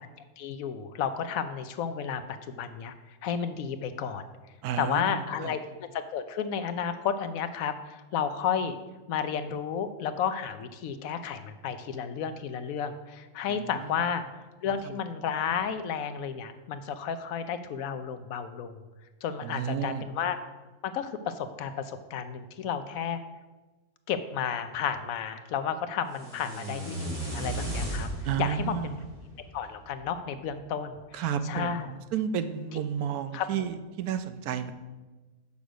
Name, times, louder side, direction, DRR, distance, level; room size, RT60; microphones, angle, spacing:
voice 1, 0.4-2.2 2.5-2.9 3.2-4.2 4.8-5.6 5.9-8.8 9.1-14.2 14.6-18.8 19.2-20.4 20.8-23.2 24.1-28.1 28.4-28.9 29.5-31.9 33.3-33.5, left 7 dB, 75° left, 10 dB, 1.0 m, -32 dB
voice 2, 4.6-5.6 13.5-14.1 14.8-15.0 19.4-20.0 28.2-29.1 31.1-34.7, right 8 dB, 85° right, 11 dB, 1.1 m, -32 dB
sound 1, 26.1-30.2, right 1 dB, 65° right, 3.4 m, -36 dB
7.0 x 6.4 x 5.0 m, 1.2 s
omnidirectional pair, 1.5 m